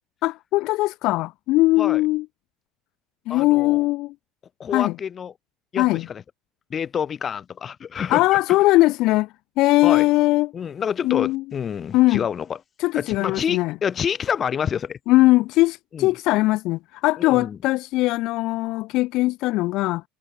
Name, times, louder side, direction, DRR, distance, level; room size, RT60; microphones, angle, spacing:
voice 1, 0.2-2.2 3.3-4.1 4.7-4.9 5.8-6.1 8.1-9.3 9.6-10.5 11.0-11.4 11.9-12.2 12.8-13.7 15.1-20.0, left 19 dB, 55° left, 1.4 m, -20 dB
voice 2, 3.3-3.8 4.6-5.3 5.7-6.2 6.7-8.4 9.8-10.1 10.5-12.6 12.9-15.0 15.9-16.1 17.2-17.6, left 7 dB, 25° left, 3.7 m, -28 dB
cardioid pair, 155°, 0 cm